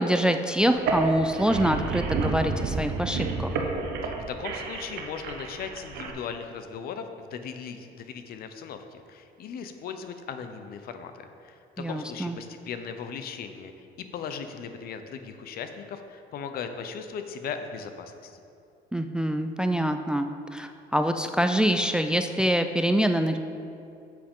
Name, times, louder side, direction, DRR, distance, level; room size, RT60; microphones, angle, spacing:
voice 1, 0.0-3.6 11.8-12.4 18.9-23.4, equal, 5° right, 7 dB, 0.3 m, -25 dB
sound 1, 0.7-6.1, right 4 dB, 75° right, 1.0 m, -30 dB
voice 2, 4.0-18.4, left 6 dB, 65° left, 8 dB, 0.7 m, -38 dB
8.8 x 7.6 x 3.7 m, 2.6 s
cardioid pair, 110°, 17 cm